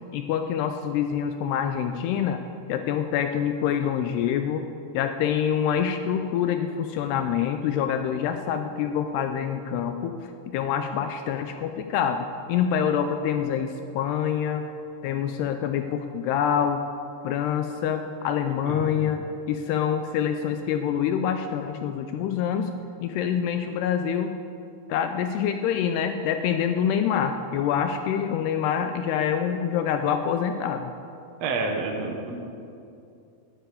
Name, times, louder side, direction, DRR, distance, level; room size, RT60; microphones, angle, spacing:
voice 1, 0.1-2.4 2.7-4.7 4.9-14.6 15.0-16.8 17.2-19.2 19.5-22.7 23.0-24.3 24.9-30.9, left 8 dB, 80° left, 7 dB, 2.5 m, -26 dB
voice 2, 18.6-19.0 31.4-32.4, right 3 dB, 65° right, 2 dB, 1.7 m, -29 dB
11.5 x 9.7 x 8.3 m, 2.6 s
omnidirectional pair, 5.1 m